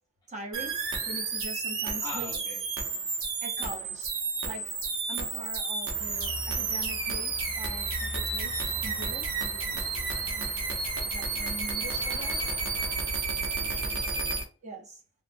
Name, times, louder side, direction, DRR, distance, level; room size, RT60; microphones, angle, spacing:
voice 1, 0.3-2.3 3.4-4.1 4.4-4.8 5.1-12.4 14.6-15.0, right 2 dB, 35° right, 0.8 m, -43 dB
sound 1, 0.5-14.4, right 4 dB, 65° right, 0.8 m, -31 dB
voice 2, 2.0-2.7 11.2-12.1 13.4-14.1, left 1 dB, 20° left, 0.7 m, -44 dB
Cricket, 5.9-13.9, left 1 dB, 80° left, 0.9 m, -42 dB
3.0 x 2.1 x 2.5 m
head